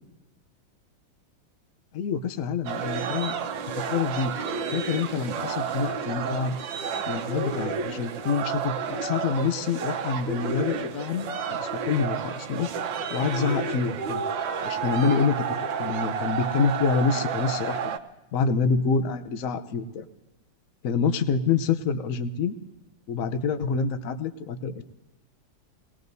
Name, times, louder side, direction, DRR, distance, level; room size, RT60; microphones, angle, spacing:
voice 1, 1.9-3.3 3.9-4.3 4.7-6.5 7.1-11.3 11.6-12.7 13.1-14.2 14.6-18.0 18.3-20.0 20.8-22.5 23.1-24.8, left 5 dB, 55° left, 9 dB, 1.0 m, -27 dB
sound 1, 2.7-18.0, right 6 dB, 75° right, 1.5 m, -31 dB
27.5 x 19.5 x 2.7 m, 1.1 s
omnidirectional pair, 2.1 m